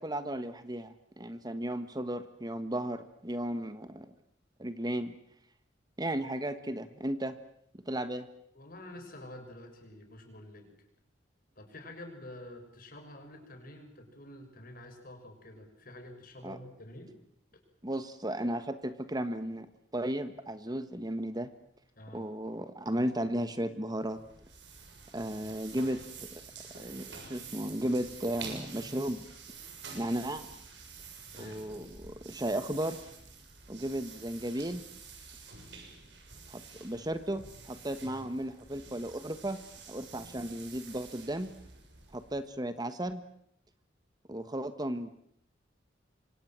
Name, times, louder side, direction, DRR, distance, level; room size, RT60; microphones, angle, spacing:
voice 1, 0.0-4.1 4.6-5.1 6.0-7.4 7.9-8.3 16.4-16.6 17.8-19.7 19.9-21.5 22.1-24.2 25.1-26.4 26.7-29.2 29.9-30.5 31.4-33.0 33.7-34.8 36.5-39.6 39.9-41.5 42.1-43.2 44.3-45.1, right 1 dB, 20° right, 10 dB, 1.4 m, -35 dB
voice 2, 8.5-10.7 11.6-17.1 22.0-22.3 25.3-25.6 31.3-31.6 38.0-38.3, left 1 dB, 50° left, 6 dB, 6.6 m, -48 dB
sound 1, 24.0-42.5, right 5 dB, 65° right, 7.4 m, -48 dB
28.0 x 25.0 x 7.6 m, 0.70 s
head